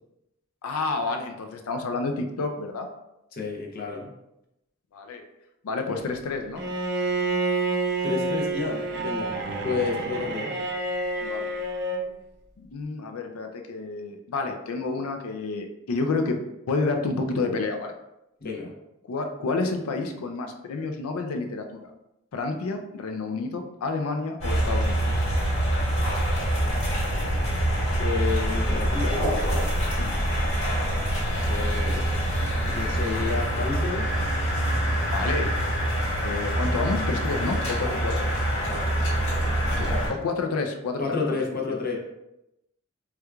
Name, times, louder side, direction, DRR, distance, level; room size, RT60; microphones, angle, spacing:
voice 1, 0.6-2.9 4.9-5.2 5.6-6.6 11.2-11.5 12.6-16.4 16.7-17.9 19.1-21.8 22.3-25.1 30.0-30.1 35.0-35.5 36.2-38.3 40.1-41.4 41.7-41.8, left 3 dB, 90° left, 5 dB, 0.4 m, -29 dB
voice 2, 3.3-4.1 8.0-9.4 9.6-10.5 18.4-18.7 27.9-29.2 31.5-32.3 32.6-34.1 39.7-40.0 41.0-42.0, left 4 dB, 45° left, -1 dB, 0.6 m, -30 dB
Bowed string instrument, 6.6-12.1, right 2 dB, 50° right, 0.4 m, -28 dB
sound 1, 24.4-40.1, right 1 dB, 65° left, 1.4 m, -25 dB
4.3 x 2.3 x 2.3 m, 0.88 s
head